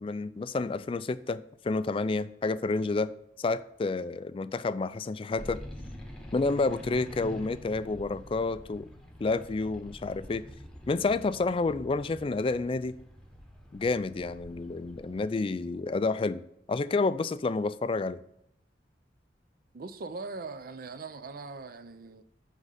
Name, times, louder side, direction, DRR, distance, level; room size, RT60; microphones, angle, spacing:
voice 1, 0.0-3.1 3.4-5.6 6.3-8.9 9.2-10.4 10.9-13.0 13.7-16.4 16.7-18.2, left 3 dB, 30° left, 0.3 m, -29 dB
sound 1, 5.4-15.3, equal, 5° left, 0.9 m, -46 dB
voice 2, 19.7-22.2, right 3 dB, 50° right, 0.5 m, -40 dB
9.4 x 3.7 x 6.5 m
head